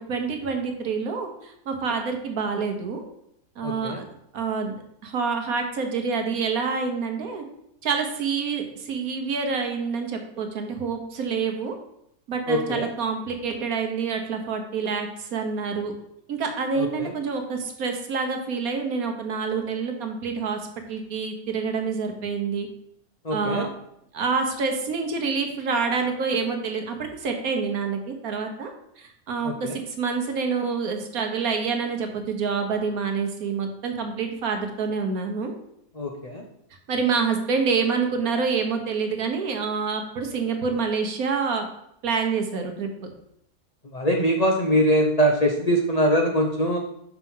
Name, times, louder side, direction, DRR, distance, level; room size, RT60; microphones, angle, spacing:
voice 1, 0.1-3.0 3.6-4.0 4.3-4.8 5.0-7.4 7.8-11.7 12.3-15.9 16.3-20.6 20.9-22.7 23.3-23.7 24.1-28.7 29.0-35.5 36.9-41.6 42.0-43.1, right 5 dB, 65° right, 4 dB, 1.4 m, -27 dB
voice 2, 3.6-4.0 12.5-12.9 16.8-17.1 23.2-23.7 29.4-29.8 36.0-36.4 43.8-46.8, equal, 55° left, 1 dB, 0.4 m, -23 dB
5.9 x 4.6 x 5.4 m, 0.76 s
omnidirectional pair, 1.7 m